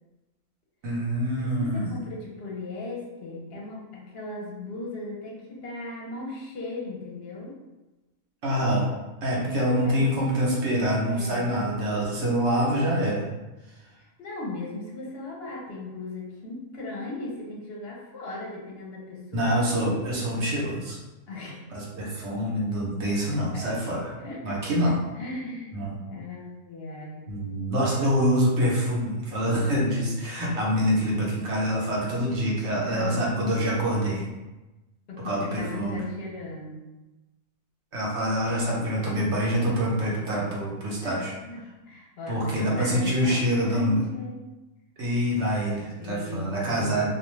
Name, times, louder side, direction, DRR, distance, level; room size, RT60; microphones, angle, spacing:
voice 1, 0.8-1.9 8.4-8.9 9.2-13.3 19.3-21.0 21.7-24.0 24.4-24.9 25.7-26.0 27.3-34.2 35.2-36.0 37.9-41.3 42.3-44.0 45.0-47.1, equal, 65° right, -4 dB, 0.9 m, -25 dB
voice 2, 1.4-7.6 9.4-10.4 11.1-11.5 14.2-19.6 21.3-21.6 23.0-23.1 23.5-23.8 24.2-24.5 24.8-25.8 26.1-27.3 32.8-33.3 35.1-36.9 40.9-44.5 45.9-47.1, left 2 dB, 60° left, -2 dB, 0.8 m, -37 dB
2.4 x 2.3 x 3.0 m, 1.1 s
omnidirectional pair, 1.4 m